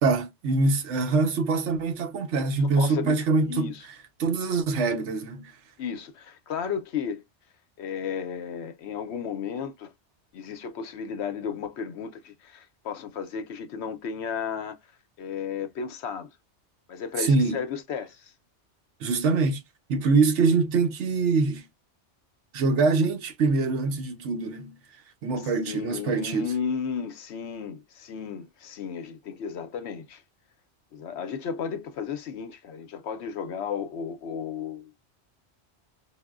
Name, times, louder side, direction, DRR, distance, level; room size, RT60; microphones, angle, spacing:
voice 1, 0.0-3.7 4.2-5.5 17.2-17.6 19.0-19.6 19.9-21.6 22.5-24.7 25.2-26.5, right 4 dB, 80° right, 1.1 m, -24 dB
voice 2, 2.6-3.2 3.4-3.8 5.8-7.2 7.8-9.9 10.3-14.8 15.2-16.3 16.9-18.3 25.4-30.2 30.9-34.9, left 7 dB, 70° left, 0.9 m, -34 dB
4.6 x 2.1 x 2.3 m
omnidirectional pair, 1.2 m